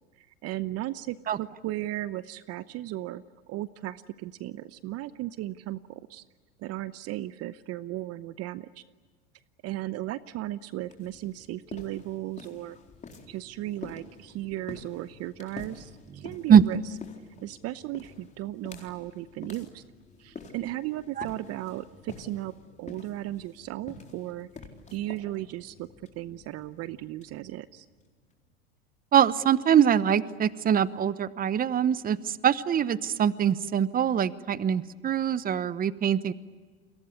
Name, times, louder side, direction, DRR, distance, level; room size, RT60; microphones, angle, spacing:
voice 1, 0.2-6.2 6.6-8.8 9.6-12.8 13.3-16.8 17.4-19.8 20.2-22.5 22.8-24.5 24.9-25.9 26.2-27.9, right 15 dB, 45° right, 15 dB, 0.9 m, -36 dB
sound 1, 10.8-28.3, left 4 dB, 20° left, 4.1 m, -48 dB
voice 2, 29.1-36.3, right 8 dB, 25° right, 16 dB, 1.0 m, -23 dB
30.0 x 23.0 x 8.4 m, 1.4 s
hypercardioid pair, 95°, 33 cm